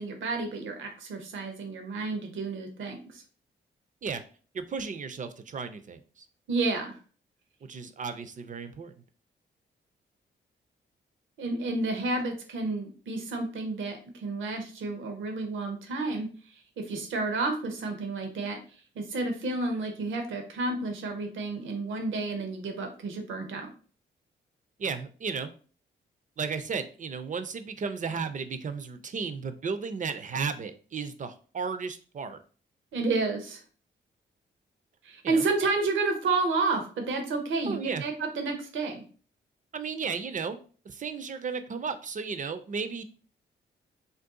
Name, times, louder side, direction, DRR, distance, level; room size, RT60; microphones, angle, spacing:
voice 1, 0.0-3.2 6.5-6.9 11.4-16.3 16.8-18.6 19.0-23.7 32.9-33.6 35.0-39.0, right 3 dB, 80° right, 5 dB, 0.7 m, -30 dB
voice 2, 4.5-6.3 7.7-8.9 24.8-25.5 26.4-32.4 35.2-35.5 37.7-38.0 39.7-40.6 40.9-43.0, right 5 dB, 40° right, 10 dB, 0.5 m, -34 dB
2.6 x 2.3 x 3.6 m, 0.40 s
cardioid pair, 60°, 20 cm